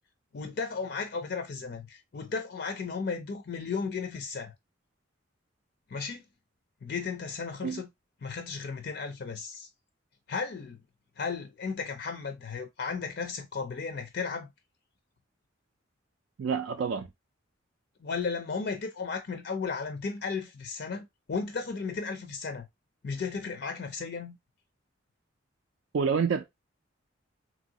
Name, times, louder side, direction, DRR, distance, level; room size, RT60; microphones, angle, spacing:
voice 1, 0.3-4.5 5.9-6.2 6.8-7.9 8.2-9.7 10.3-10.8 11.2-14.5 18.0-22.7 23.0-24.4, left 5 dB, 55° left, 0.4 m, -34 dB
voice 2, 16.4-17.1 25.9-26.4, right 6 dB, 65° right, 0.3 m, -28 dB
3.0 x 2.7 x 2.7 m
head